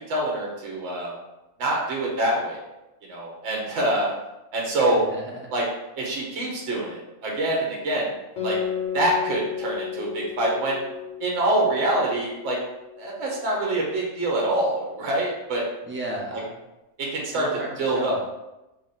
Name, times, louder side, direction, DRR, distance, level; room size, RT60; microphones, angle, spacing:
voice 1, 0.1-1.1 1.6-2.6 3.1-4.1 4.5-5.0 5.5-5.6 6.0-8.1 8.4-8.6 8.9-10.8 11.2-12.6 13.0-15.6 17.0-17.5 17.8-18.2, right 1 dB, 60° right, -3 dB, 1.2 m, -25 dB
voice 2, 5.1-5.5 15.8-16.5 17.3-18.2, right 1 dB, 15° right, -3 dB, 0.5 m, -34 dB
Guitar, 8.4-13.3, left 9 dB, 75° left, 1.2 m, -33 dB
3.0 x 2.8 x 4.0 m, 0.95 s
omnidirectional pair, 1.3 m